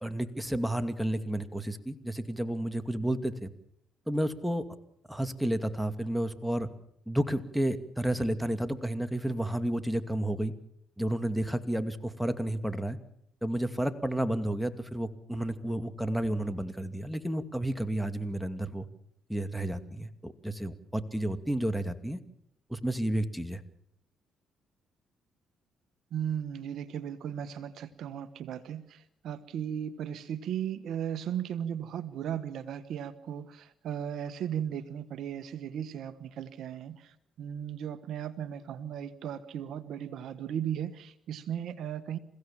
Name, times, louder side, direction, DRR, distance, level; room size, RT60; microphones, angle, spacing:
voice 1, 0.0-3.5 4.1-4.7 5.1-6.7 7.1-10.5 11.0-13.0 13.4-18.9 19.3-22.2 22.7-23.6, right 1 dB, ahead, 8 dB, 2.4 m, -31 dB
voice 2, 26.1-42.2, right 9 dB, 70° right, 13 dB, 1.2 m, -36 dB
29.0 x 16.0 x 7.4 m, 0.73 s
supercardioid pair, 65°, 0 cm